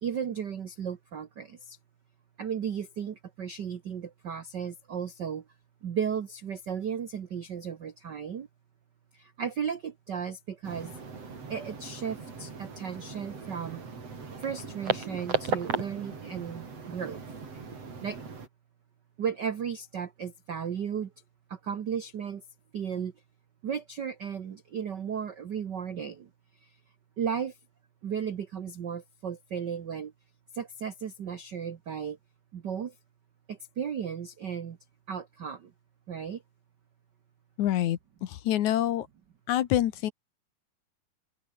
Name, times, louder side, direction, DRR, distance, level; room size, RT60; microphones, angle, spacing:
voice 1, 0.0-1.8 2.4-5.4 5.8-8.5 9.1-10.9 11.5-13.8 14.4-17.2 18.0-18.2 19.2-21.1 21.5-22.4 22.7-23.1 23.6-26.3 26.6-26.7 27.2-27.6 28.0-30.1 30.5-32.2 32.5-32.9 33.5-34.8 35.1-35.7 36.1-36.4, right 7 dB, 75° right, 1.0 m, -35 dB
sound 1, 10.6-18.5, right 5 dB, 50° right, 5.2 m, -36 dB
voice 2, 37.6-39.1 39.5-40.1, left 12 dB, 70° left, 2.4 m, -26 dB
open air
omnidirectional pair, 3.8 m